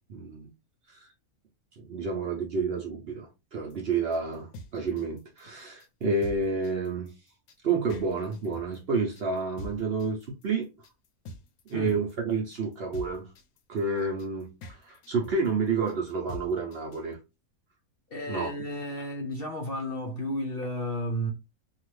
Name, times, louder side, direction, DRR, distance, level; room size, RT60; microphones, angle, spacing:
voice 1, 0.1-0.5 0.9-1.1 1.8-7.1 7.6-10.7 11.7-13.3 13.7-17.2 18.3-18.5, right 4 dB, 55° right, 0.7 m, -30 dB
sound 1, 3.7-17.1, left 2 dB, 85° left, 1.0 m, -45 dB
voice 2, 18.1-21.3, equal, 55° left, 0.7 m, -32 dB
2.8 x 2.4 x 3.1 m
omnidirectional pair, 1.5 m